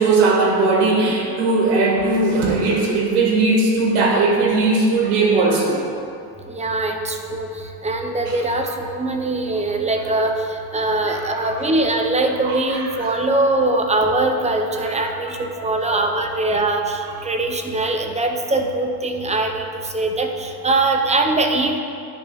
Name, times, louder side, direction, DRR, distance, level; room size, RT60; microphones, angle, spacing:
voice 1, 0.0-5.8 8.3-8.4 9.6-9.9 10.8-11.7 12.4-13.2 14.7-16.1, right 3 dB, 65° right, 0 dB, 1.4 m, -20 dB
voice 2, 6.5-21.8, right 2 dB, 15° right, 4 dB, 0.5 m, -22 dB
10.0 x 3.6 x 3.0 m, 2.5 s
supercardioid pair, 85°, 44 cm